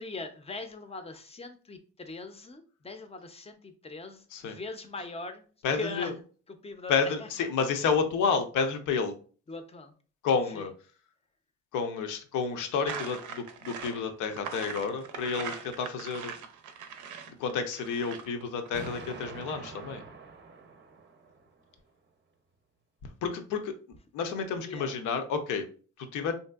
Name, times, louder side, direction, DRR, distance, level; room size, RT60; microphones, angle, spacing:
voice 1, 0.0-5.4 5.7-6.1 6.5-6.9 7.2-7.3 9.5-9.9 10.5-10.7 24.7-24.9, left 3 dB, 20° left, 8 dB, 0.5 m, -41 dB
voice 2, 5.6-6.1 6.9-9.1 10.2-10.7 11.7-16.3 17.3-20.0 23.2-23.8 24.1-25.6 26.0-26.3, left 5 dB, 85° left, 7 dB, 0.6 m, -30 dB
sound 1, 12.9-19.5, right 6 dB, 80° right, 0.6 m, -41 dB
Explosion, 18.7-21.7, right 4 dB, 40° right, 0.6 m, -46 dB
3.1 x 2.7 x 2.3 m, 0.40 s
cardioid pair, 90°, 30 cm